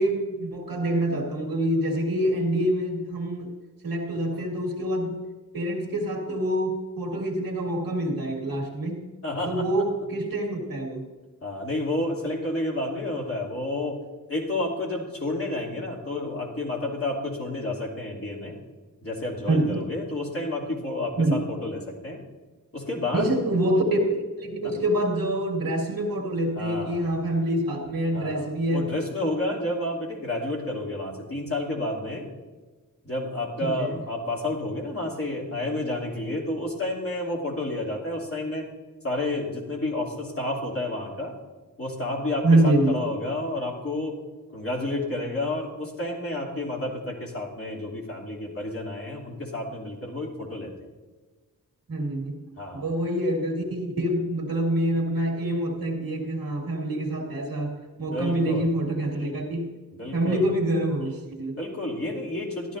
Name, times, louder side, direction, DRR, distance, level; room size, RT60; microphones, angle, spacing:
voice 1, 0.0-3.5 3.8-5.2 5.5-9.0 9.5-11.0 19.5-19.8 21.2-21.3 23.1-29.0 33.6-33.9 42.4-43.0 51.9-52.4 52.7-59.7 60.1-61.5, right 1 dB, 75° right, 0 dB, 2.2 m, -26 dB
voice 2, 9.2-9.7 11.4-14.0 14.3-18.6 19.0-22.2 22.7-23.4 24.6-24.7 26.5-27.1 28.1-32.3 33.0-38.7 39.0-41.3 41.8-44.2 44.5-50.7 52.6-52.8 58.0-58.7 59.9-60.5 61.5-62.8, left 1 dB, 40° left, -3 dB, 2.9 m, -30 dB
14.0 x 11.0 x 2.6 m, 1.3 s
wide cardioid pair, 75°, 35 cm